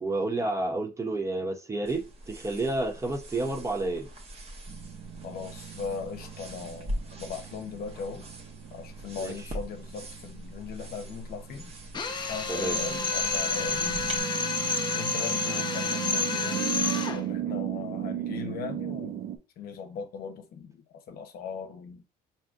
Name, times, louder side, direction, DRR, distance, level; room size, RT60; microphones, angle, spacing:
voice 1, 0.0-4.1 9.2-9.3 12.5-12.8, right 2 dB, 15° right, 0.6 m, -30 dB
sound 1, 1.8-14.2, equal, 35° right, 1.0 m, -42 dB
sound 2, 4.7-19.4, right 11 dB, 55° right, 0.6 m, -37 dB
voice 2, 5.2-8.3 8.7-11.7 12.2-14.1 14.9-19.3 19.6-22.0, left 6 dB, 65° left, 0.7 m, -39 dB
Drill, 11.9-17.2, left 4 dB, 25° left, 0.6 m, -29 dB
4.8 x 2.8 x 2.4 m
cardioid pair, 110°, 17 cm